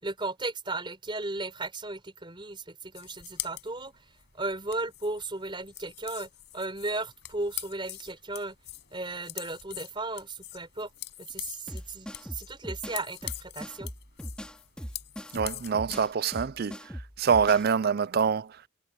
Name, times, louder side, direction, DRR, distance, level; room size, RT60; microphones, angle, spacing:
voice 1, 0.0-3.9 4.3-8.6 8.9-10.9 11.2-13.9, right 2 dB, 25° right, 4.4 m, -35 dB
sound 1, 3.0-16.1, left 14 dB, 60° left, 5.6 m, -43 dB
sound 2, 11.7-17.7, equal, 5° left, 3.9 m, -40 dB
voice 2, 15.3-16.8 17.2-18.6, right 6 dB, 50° right, 0.4 m, -25 dB
head